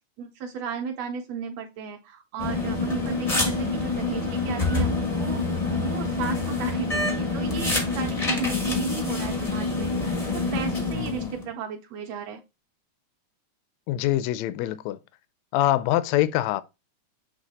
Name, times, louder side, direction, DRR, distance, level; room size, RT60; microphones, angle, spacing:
voice 1, 0.2-5.5 5.8-9.9 10.3-12.4, right 7 dB, 75° right, 1.7 m, -34 dB
sound 1, 2.4-11.5, left 3 dB, 60° left, 0.3 m, -26 dB
voice 2, 10.9-11.3 13.9-15.0 15.5-16.6, left 14 dB, 80° left, 1.7 m, -24 dB
7.4 x 3.1 x 4.1 m
omnidirectional pair, 3.4 m